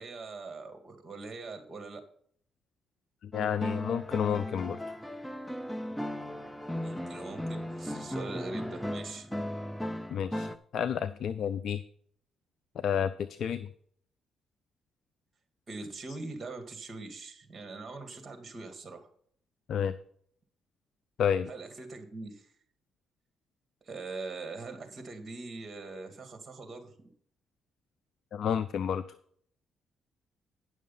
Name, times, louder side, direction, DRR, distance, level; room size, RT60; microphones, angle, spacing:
voice 1, 0.0-2.0 6.8-9.3 15.7-19.1 21.5-22.5 23.8-27.1, right 3 dB, 35° right, 6 dB, 2.2 m, -42 dB
voice 2, 3.2-4.8 10.1-11.8 12.8-13.7 16.1-16.2 19.7-19.9 21.2-21.5 28.3-29.0, left 8 dB, 65° left, 13 dB, 0.4 m, -30 dB
sound 1, 3.3-10.6, equal, 5° left, 0.6 m, -37 dB
10.0 x 6.4 x 5.5 m, 0.62 s
cardioid pair, 90°, 0 cm